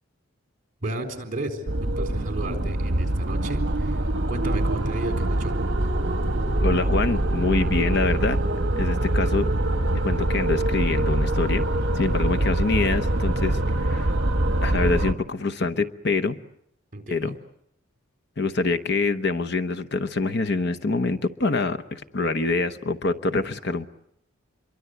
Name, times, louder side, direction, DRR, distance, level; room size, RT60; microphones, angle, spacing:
voice 1, 0.8-4.0 4.3-5.6 16.9-17.3, right 2 dB, 40° right, 5 dB, 4.0 m, -33 dB
sound 1, 1.7-15.1, right 1 dB, 55° right, 1.3 m, -24 dB
voice 2, 6.6-8.4 8.7-9.5 10.0-11.7 11.9-14.1 14.6-16.4 17.1-17.3 18.4-23.9, left 3 dB, 50° left, 9 dB, 1.0 m, -25 dB
27.0 x 23.0 x 8.0 m, 0.76 s
head